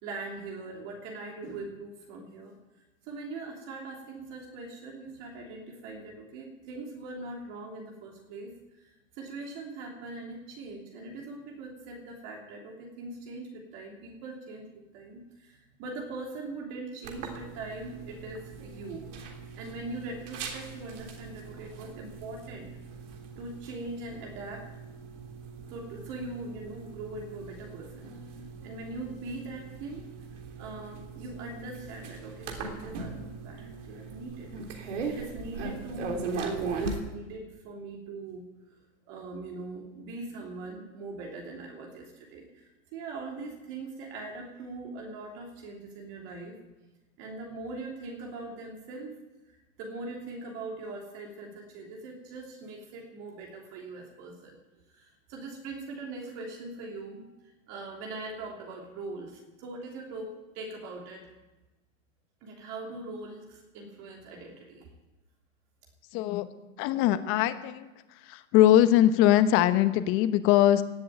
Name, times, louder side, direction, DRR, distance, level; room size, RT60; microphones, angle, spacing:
voice 1, 0.0-2.5 3.0-14.7 14.9-22.7 23.4-24.8 25.7-28.1 28.6-30.1 30.6-34.5 35.1-38.5 39.1-46.6 47.2-49.2 49.5-54.6 54.9-57.2 57.7-61.3 62.4-64.9, right 3 dB, 40° right, -1 dB, 3.2 m, -41 dB
sound 1, 17.0-37.0, right 4 dB, 60° right, 3.4 m, -40 dB
voice 2, 66.1-66.5 66.8-67.9 68.2-70.8, left 12 dB, 30° left, 12 dB, 1.0 m, -22 dB
17.5 x 7.8 x 9.0 m, 1.1 s
hypercardioid pair, 135°, 40 cm